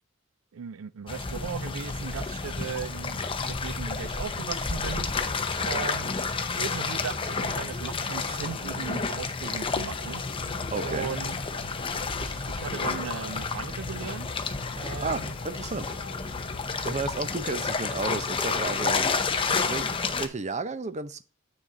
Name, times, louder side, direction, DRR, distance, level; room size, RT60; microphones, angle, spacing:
voice 1, 0.5-5.3 5.7-6.1 6.5-10.2 10.8-11.4 11.9-14.3 14.7-15.3, right 6 dB, 90° right, 0.4 m, -37 dB
sound 1, 1.1-20.3, left 4 dB, 25° left, 0.7 m, -30 dB
sound 2, 9.5-17.2, left 4 dB, 80° left, 0.6 m, -45 dB
voice 2, 10.7-11.1 15.0-15.9 16.6-19.1 19.6-21.2, right 3 dB, 35° right, 0.6 m, -33 dB
9.1 x 4.1 x 3.7 m
head